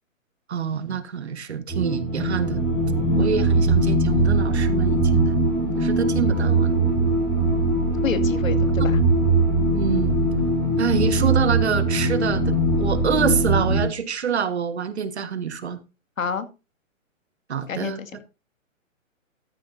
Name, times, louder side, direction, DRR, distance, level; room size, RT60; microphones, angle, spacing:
voice 1, 0.5-2.6 3.1-5.4 5.8-6.7 9.0-9.1 9.7-10.2 10.8-15.8 17.5-18.0, right 7 dB, 55° right, 1.6 m, -26 dB
sound 1, 1.7-13.8, right 2 dB, 5° left, 1.6 m, -21 dB
voice 2, 8.0-9.0 16.2-16.5 17.7-18.1, left 6 dB, 75° left, 2.2 m, -29 dB
14.0 x 9.6 x 2.7 m
hypercardioid pair, 180°, 40 cm